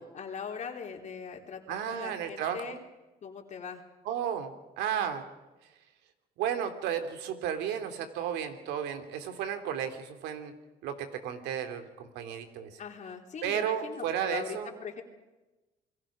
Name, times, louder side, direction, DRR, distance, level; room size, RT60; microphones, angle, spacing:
voice 1, 0.0-2.8 3.2-3.8 12.8-15.0, left 6 dB, 45° left, 2 dB, 3.6 m, -41 dB
voice 2, 1.7-2.8 4.0-5.2 6.4-10.5 10.8-12.8 13.4-14.7, right 9 dB, 90° right, 8 dB, 3.0 m, -33 dB
29.0 x 22.0 x 5.1 m, 1.1 s
cardioid pair, 110°, 17 cm